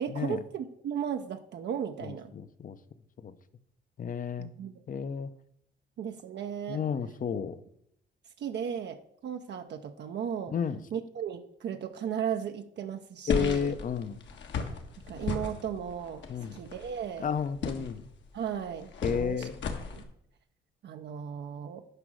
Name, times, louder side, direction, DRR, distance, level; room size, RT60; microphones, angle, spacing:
voice 1, 0.0-2.3 4.4-4.8 6.0-6.8 8.4-10.5 10.9-13.7 15.1-16.2 16.5-17.3 18.3-19.5 19.9-20.0 20.8-21.8, right 8 dB, 60° right, 6 dB, 0.7 m, -35 dB
voice 2, 2.0-2.8 3.2-3.3 4.0-4.5 4.9-5.3 6.7-7.6 10.5-10.8 13.3-14.2 16.3-16.5 17.2-18.1 19.0-19.6, left 7 dB, 45° left, 13 dB, 0.7 m, -32 dB
sound 1, 13.3-20.0, left 5 dB, 70° left, 1.5 m, -36 dB
9.8 x 5.2 x 6.2 m, 0.72 s
cardioid pair, 90°, 20 cm